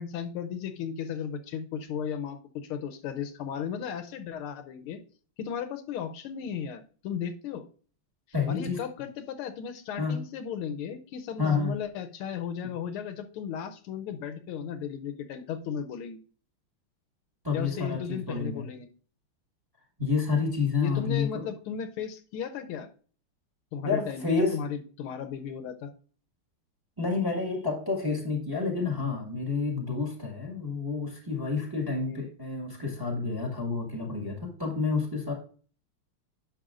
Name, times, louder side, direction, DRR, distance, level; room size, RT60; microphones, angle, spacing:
voice 1, 0.0-5.0 5.4-7.6 8.5-16.2 17.5-18.9 20.8-22.9 23.7-25.9 32.1-32.2, left 7 dB, 80° left, 8 dB, 1.5 m, -35 dB
voice 2, 8.3-8.8 10.0-10.2 11.4-11.7 17.4-18.6 20.0-21.5 23.8-24.6 27.0-35.3, left 4 dB, 10° right, 1 dB, 1.5 m, -29 dB
10.5 x 6.3 x 2.5 m, 0.42 s
omnidirectional pair, 2.4 m